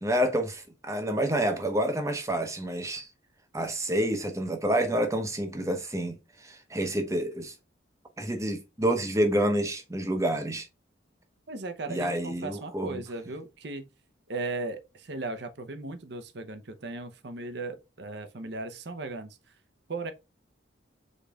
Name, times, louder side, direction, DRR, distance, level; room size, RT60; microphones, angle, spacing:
voice 1, 0.0-3.1 3.5-6.2 6.4-7.5 8.2-10.7 11.9-13.0, right 1 dB, 15° right, 0.8 m, -28 dB
voice 2, 11.5-13.9 14.3-19.4 19.9-20.1, right 2 dB, 60° right, 0.7 m, -37 dB
5.1 x 3.9 x 2.3 m
head